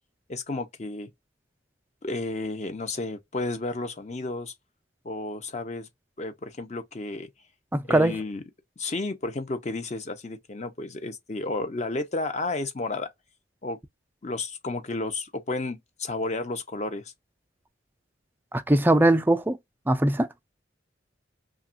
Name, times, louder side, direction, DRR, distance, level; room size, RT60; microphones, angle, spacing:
voice 1, 0.3-1.1 2.0-4.5 5.0-5.9 6.2-7.3 7.8-8.4 8.8-13.1 13.6-13.8 14.2-17.1, left 2 dB, 35° left, 0.6 m, -32 dB
voice 2, 7.7-8.2 18.5-19.6 19.9-20.3, right 1 dB, 10° right, 0.3 m, -21 dB
2.9 x 2.3 x 2.4 m
head